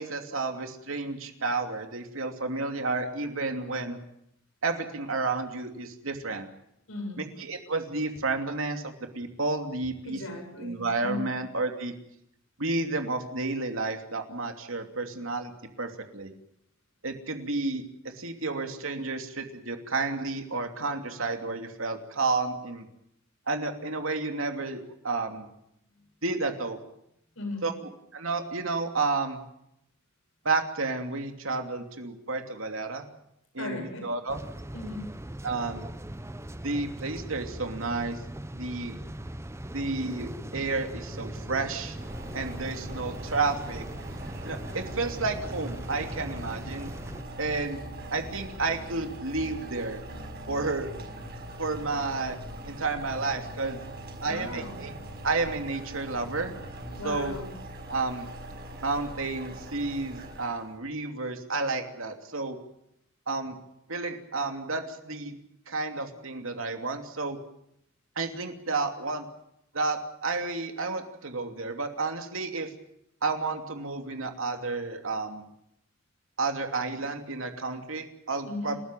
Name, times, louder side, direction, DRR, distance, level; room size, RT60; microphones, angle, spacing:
voice 1, 0.0-4.0 4.6-6.5 7.5-10.2 10.6-11.9 12.6-15.5 15.8-16.3 17.0-17.8 18.2-22.9 23.5-25.5 26.2-26.8 27.6-27.7 28.1-29.4 30.4-33.0 33.5-34.4 35.4-35.9 36.6-38.2 38.5-39.0 39.7-42.0 42.3-43.8 44.4-46.9 47.4-47.8 48.1-50.0 50.5-50.9 51.6-52.4 52.6-53.8 54.2-54.9 55.2-56.5 57.0-57.3 57.9-58.3 58.8-62.6 63.3-63.5 63.9-65.3 65.7-67.4 68.2-69.3 69.7-72.7 73.2-75.4 76.4-78.8, right 3 dB, 85° right, 5 dB, 2.9 m, -31 dB
voice 2, 6.9-7.2 10.0-11.3 25.9-26.0 27.3-27.6 33.6-34.1 34.7-35.1 54.2-54.8 57.0-57.5 78.5-78.8, left 2 dB, 80° left, 3 dB, 7.9 m, -37 dB
sound 1, 34.3-47.2, right 1 dB, 15° right, 0.8 m, -40 dB
sound 2, 39.9-57.6, equal, 60° left, 3.3 m, -47 dB
sound 3, 41.8-60.7, right 1 dB, 50° right, 5.6 m, -43 dB
29.5 x 13.5 x 9.1 m, 0.78 s
head